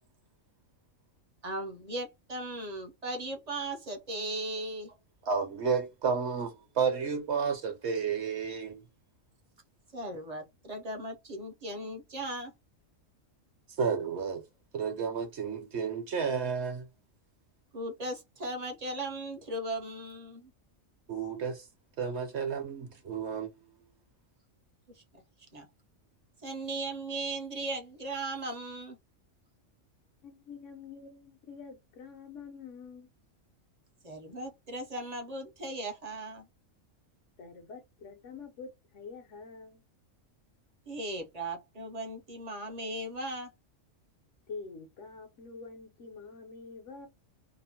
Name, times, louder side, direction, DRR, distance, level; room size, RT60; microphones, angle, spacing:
voice 1, 1.4-4.9 9.9-12.5 17.7-20.5 25.5-25.7 26.4-29.0 34.0-36.5 40.9-43.5, right 1 dB, 40° right, 0.6 m, -37 dB
voice 2, 5.2-8.8 13.8-14.4 14.7-16.9 21.1-21.7 22.0-23.5, right 6 dB, 60° right, 1.0 m, -31 dB
voice 3, 30.2-33.1 37.4-39.8 44.5-47.1, left 4 dB, 70° left, 1.2 m, -46 dB
2.9 x 2.1 x 2.8 m
omnidirectional pair, 1.4 m